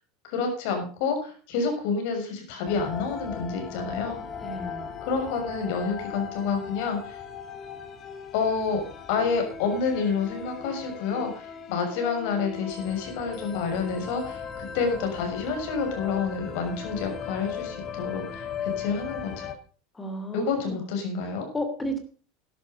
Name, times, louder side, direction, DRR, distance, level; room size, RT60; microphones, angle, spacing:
voice 1, 0.3-4.2 5.0-7.2 8.3-8.8 9.1-19.5 20.3-21.5, left 5 dB, 65° left, 4 dB, 6.4 m, -29 dB
sound 1, 2.6-19.5, left 7 dB, 35° left, 2.1 m, -38 dB
voice 2, 4.4-4.9 20.0-20.8 21.2-22.0, equal, 10° left, 9 dB, 3.0 m, -33 dB
12.0 x 12.0 x 5.3 m, 0.39 s
supercardioid pair, 130°, 0 cm